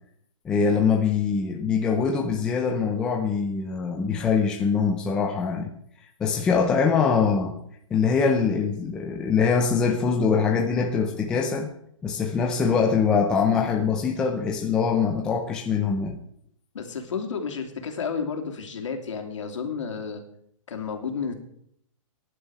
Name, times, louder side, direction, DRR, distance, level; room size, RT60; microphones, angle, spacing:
voice 1, 0.4-5.7 6.2-7.5 7.9-11.7 12.0-16.2, left 5 dB, 5° left, 0.5 m, -23 dB
voice 2, 16.7-20.2 20.7-21.3, left 5 dB, 65° left, 3.0 m, -31 dB
19.5 x 11.0 x 4.8 m
hypercardioid pair, 180°, 17 cm